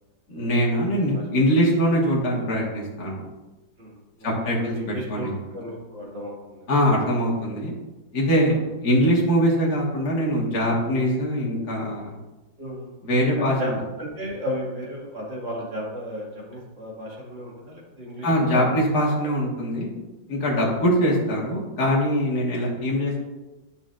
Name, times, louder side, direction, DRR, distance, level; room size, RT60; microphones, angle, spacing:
voice 1, 0.3-3.2 4.2-5.4 6.7-7.7 8.1-8.6 8.8-12.1 13.0-13.8 18.2-19.9 20.3-23.2, equal, 50° left, -3 dB, 2.1 m, -22 dB
voice 2, 3.8-4.3 4.6-6.7 8.5-8.6 12.6-12.9 13.4-13.7 14.0-18.8 20.6-20.8, equal, 35° right, -5 dB, 2.5 m, -34 dB
12.5 x 5.8 x 2.5 m, 1.1 s
omnidirectional pair, 2.1 m